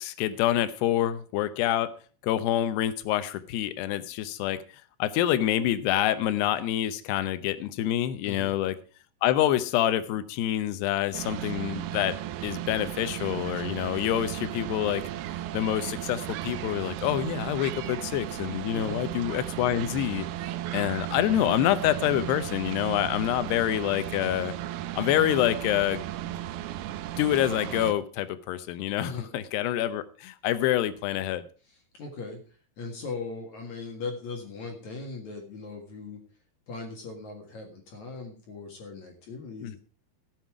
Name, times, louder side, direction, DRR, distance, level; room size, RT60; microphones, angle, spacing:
voice 1, 0.0-2.0 2.2-4.6 5.0-8.8 9.2-12.2 12.4-15.0 15.5-20.2 20.7-24.5 25.0-26.0 27.2-31.4 39.6-39.8, left 12 dB, 75° left, 13 dB, 2.6 m, -27 dB
sound 1, 11.1-27.9, right 12 dB, 85° right, 2.2 m, -35 dB
voice 2, 31.7-36.2 36.7-39.8, left 3 dB, 55° left, 2 dB, 2.4 m, -39 dB
16.5 x 7.5 x 4.7 m, 0.38 s
omnidirectional pair, 5.4 m